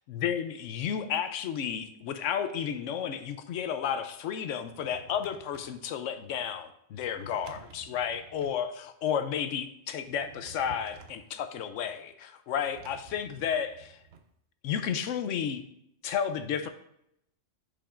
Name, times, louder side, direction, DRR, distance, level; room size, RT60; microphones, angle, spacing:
voice 1, 0.1-14.0 14.6-15.6 16.0-16.7, left 8 dB, 90° left, 9 dB, 1.0 m, -32 dB
Drawer open or close, 4.5-5.8 7.0-8.6 10.0-11.3 12.6-14.3, right 5 dB, 65° right, 0.9 m, -52 dB
8.5 x 5.3 x 2.5 m, 0.74 s
omnidirectional pair, 1.2 m